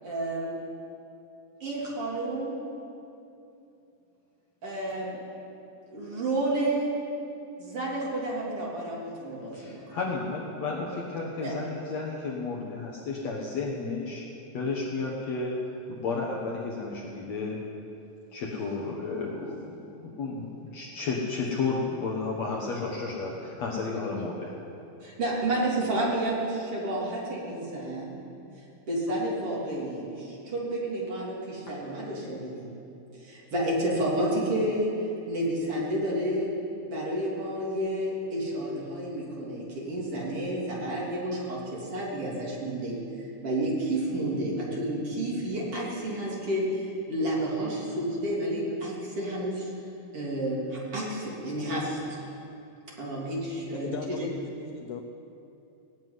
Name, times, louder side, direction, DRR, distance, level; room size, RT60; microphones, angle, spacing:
voice 1, 0.0-0.5 1.6-2.6 4.6-5.2 5.9-7.0 7.6-10.0 11.4-11.6 25.0-28.2 28.9-32.7 33.1-34.9 35.3-36.5 36.8-49.7 50.1-52.0 52.9-54.3, right 1 dB, 40° right, -5 dB, 3.8 m, -30 dB
voice 2, 9.5-14.2 14.5-15.5 15.9-17.6 18.3-24.5, left 4 dB, 60° left, -2 dB, 2.2 m, -32 dB
voice 3, 53.8-55.0, left 7 dB, 90° left, 5 dB, 1.6 m, -37 dB
18.5 x 7.3 x 9.5 m, 2.7 s
omnidirectional pair, 4.1 m